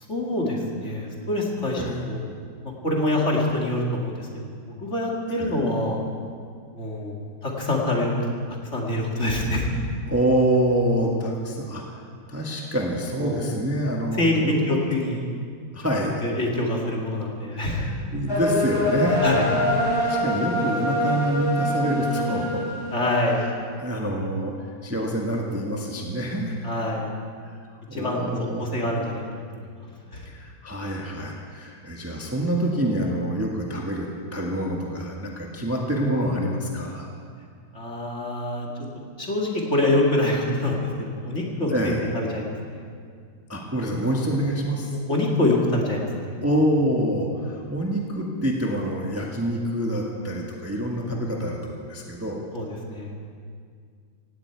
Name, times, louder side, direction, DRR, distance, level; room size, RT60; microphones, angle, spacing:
voice 1, 0.1-2.2 2.6-4.5 4.8-6.0 6.7-8.2 8.7-9.7 13.2-13.5 14.2-15.2 16.2-17.9 19.2-19.5 22.9-23.5 26.6-27.1 27.9-28.3 28.6-29.9 30.1-30.3 37.7-38.7 39.2-41.7 42.1-42.8 45.1-46.4 52.5-53.1, left 1 dB, 40° left, -2 dB, 2.5 m, -25 dB
voice 2, 10.1-11.8 12.3-14.8 15.7-16.2 17.5-17.6 18.1-19.2 19.9-22.6 23.8-24.5 24.8-26.6 27.4-27.6 27.9-28.7 30.2-37.0 41.7-42.0 43.5-44.9 46.4-52.4, right 1 dB, 10° right, -1 dB, 1.4 m, -26 dB
sound 1, 18.3-23.4, equal, 10° left, 4.3 m, -25 dB
17.5 x 17.0 x 4.6 m, 2.1 s
omnidirectional pair, 2.0 m